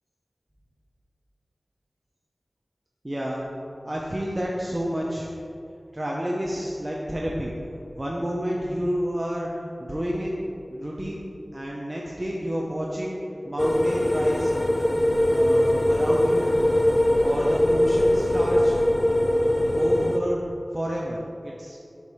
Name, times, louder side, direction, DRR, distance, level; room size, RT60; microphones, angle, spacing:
voice 1, 3.0-3.5 3.8-5.3 5.9-7.5 8.0-9.5 9.8-10.4 10.7-11.2 11.5-13.2 13.4-14.5 15.3-16.5 17.2-18.9 19.7-21.8, equal, 30° right, -3 dB, 0.7 m, -30 dB
sound 1, 13.6-20.2, left 1 dB, 25° left, 0.4 m, -21 dB
4.8 x 4.3 x 5.5 m, 2.5 s
wide cardioid pair, 45°, 0 cm